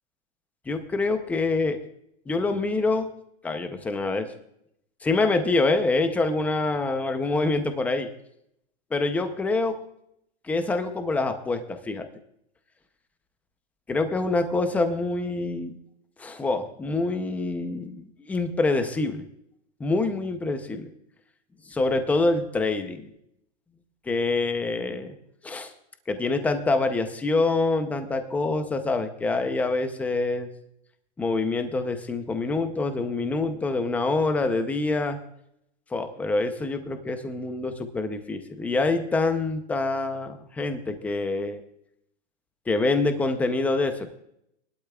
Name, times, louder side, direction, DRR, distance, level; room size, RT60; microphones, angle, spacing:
voice 1, 0.7-1.8 2.3-3.1 3.4-4.3 5.0-8.1 8.9-9.8 10.4-12.1 13.9-15.8 16.2-19.2 19.8-20.9 21.7-23.1 24.1-25.1 25.4-25.7 26.1-30.5 31.2-35.2 35.9-41.6 42.7-44.1, left 3 dB, 5° left, 8 dB, 0.5 m, -26 dB
21.0 x 12.0 x 2.3 m, 0.75 s
supercardioid pair, 155°, 33 cm